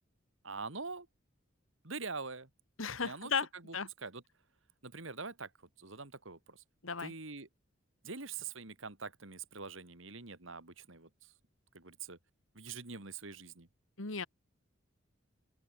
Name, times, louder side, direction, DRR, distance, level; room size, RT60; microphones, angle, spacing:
voice 1, 0.4-1.1 1.8-2.5 3.0-3.8 4.0-4.2 4.8-5.5 5.8-6.6 7.0-7.5 8.0-11.3 11.7-12.2 12.5-13.7, right 4 dB, 70° right, 2.4 m, -44 dB
voice 2, 2.8-3.5 3.7-3.9 6.8-7.1 14.0-14.3, left 5 dB, 80° left, 2.2 m, -35 dB
open air
head